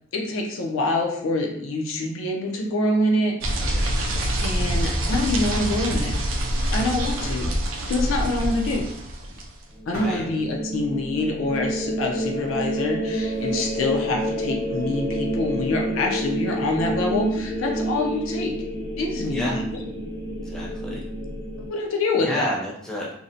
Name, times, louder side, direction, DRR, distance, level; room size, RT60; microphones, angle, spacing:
voice 1, 0.1-3.4 4.4-6.2 6.7-7.5 7.9-8.9 9.9-18.6 19.0-19.6 20.9-21.0 21.7-22.5, left 2 dB, 65° left, 2 dB, 0.4 m, -25 dB
sound 1, 3.4-9.6, right 1 dB, 65° right, 0.4 m, -25 dB
sound 2, 4.1-17.0, equal, 45° left, 1.0 m, -47 dB
sound 3, 9.8-21.7, right 1 dB, 20° right, 0.9 m, -29 dB
voice 2, 9.9-10.2 16.7-17.0 19.3-19.6 20.4-21.0 22.2-23.1, equal, 5° left, -5 dB, 0.4 m, -32 dB
2.5 x 2.0 x 2.6 m, 0.74 s
head